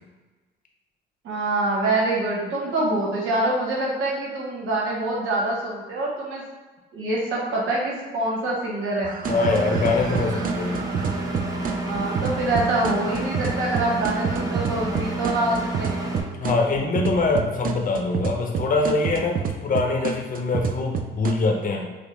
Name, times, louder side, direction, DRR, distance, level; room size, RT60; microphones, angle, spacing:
voice 1, 1.2-6.4 6.9-9.1 11.9-15.9, right 2 dB, 85° right, -4 dB, 1.1 m, -25 dB
sound 1, 9.0-21.3, right 6 dB, 45° right, 0.4 m, -29 dB
voice 2, 9.3-10.8 16.4-21.9, left 3 dB, 45° left, 1 dB, 0.7 m, -24 dB
Engine, 9.3-16.2, right 1 dB, 20° right, 0.7 m, -30 dB
5.2 x 2.0 x 3.1 m, 1.3 s
cardioid pair, 90°, 20 cm